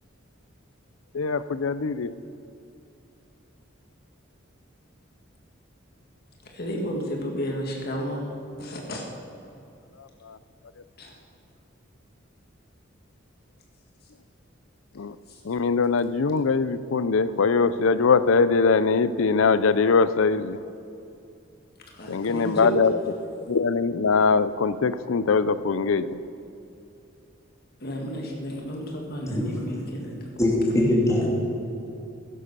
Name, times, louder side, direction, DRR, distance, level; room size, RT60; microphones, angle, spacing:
voice 1, 1.1-2.1 15.0-15.1 15.5-20.6 22.1-22.9 23.5-26.1, left 4 dB, 85° left, 15 dB, 0.5 m, -22 dB
voice 2, 6.4-8.2 8.6-9.0 11.0-11.2 15.3-15.4 21.9-22.7 27.8-30.6, equal, 50° left, 0 dB, 1.9 m, -32 dB
voice 3, 30.4-31.3, left 1 dB, 15° left, -3 dB, 3.0 m, -21 dB
15.5 x 11.0 x 6.8 m, 2.6 s
head